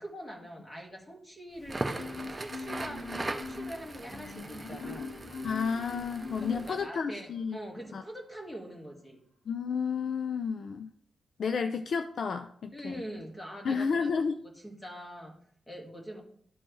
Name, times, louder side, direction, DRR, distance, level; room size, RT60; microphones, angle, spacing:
voice 1, 0.0-5.1 6.4-9.2 11.5-11.6 12.7-15.3 15.7-16.2, equal, 15° left, 0 dB, 1.6 m, -43 dB
Crackle, 1.6-6.8, right 2 dB, 15° right, 0.5 m, -39 dB
Marimba xylophone, 2.0-7.1, left 3 dB, 80° left, 3.0 m, -42 dB
voice 2, 5.4-7.6 7.9-8.0 9.5-10.9 11.4-13.0 13.6-14.4, left 5 dB, 50° left, 8 dB, 0.4 m, -31 dB
12.5 x 4.4 x 3.1 m, 0.63 s
wide cardioid pair, 170°, 0 cm